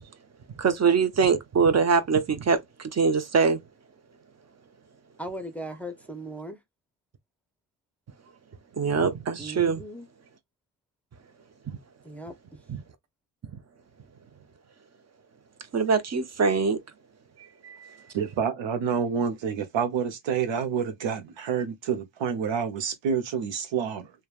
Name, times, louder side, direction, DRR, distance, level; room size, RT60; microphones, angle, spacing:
voice 1, 0.6-3.6 8.8-9.8 11.7-11.8 15.7-16.8 17.6-18.0, right 5 dB, 35° right, 0.7 m, -23 dB
voice 2, 5.2-6.6 9.4-10.1 12.0-12.3, right 1 dB, 5° left, 0.7 m, -38 dB
voice 3, 18.1-24.1, right 7 dB, 80° right, 0.8 m, -28 dB
3.2 x 2.3 x 2.3 m
cardioid pair, 80°, 45 cm